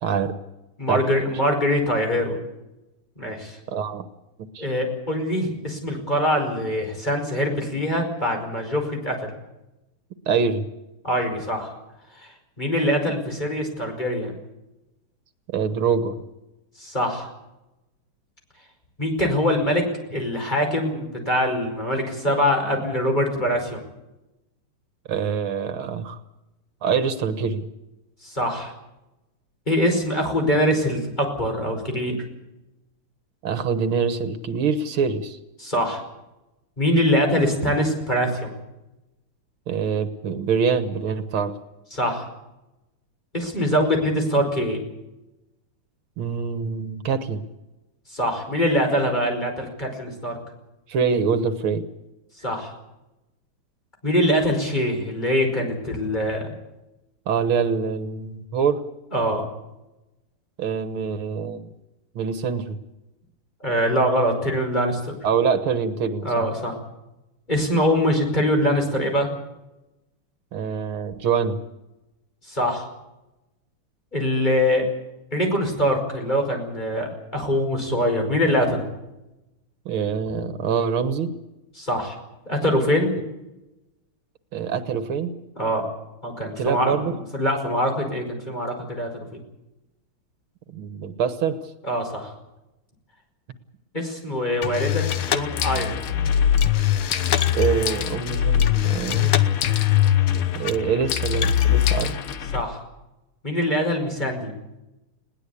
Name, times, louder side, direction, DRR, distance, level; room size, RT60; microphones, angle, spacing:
voice 1, 0.0-0.4 0.9-1.0 3.7-4.1 4.5-4.7 10.3-10.7 15.5-16.2 25.1-26.2 26.8-27.7 33.4-35.4 39.7-41.5 46.2-47.4 50.9-51.8 57.3-58.8 60.6-61.7 62.2-62.8 65.2-66.5 70.5-71.6 79.9-81.3 84.5-85.3 86.6-87.1 90.7-91.6 97.5-99.4 100.6-102.1, right 6 dB, 75° right, 10 dB, 2.1 m, -25 dB
voice 2, 0.8-2.4 3.2-3.6 4.6-9.2 11.0-11.7 12.6-14.3 16.8-17.3 19.0-19.8 20.1-23.8 28.2-28.7 29.7-32.2 35.6-36.0 36.8-38.5 41.9-42.2 43.3-44.8 48.1-50.4 52.4-52.7 54.0-56.5 59.1-59.4 63.6-65.1 66.2-66.7 67.5-69.3 72.5-72.9 74.1-74.9 75.3-78.9 81.8-82.2 82.5-83.1 85.6-85.8 86.2-89.1 91.8-92.3 93.9-96.0 102.5-102.8 103.4-104.5, equal, 20° left, 2 dB, 5.2 m, -23 dB
sound 1, 94.6-102.6, left 10 dB, 90° left, 2.0 m, -22 dB
21.0 x 18.0 x 8.5 m, 0.96 s
omnidirectional pair, 2.3 m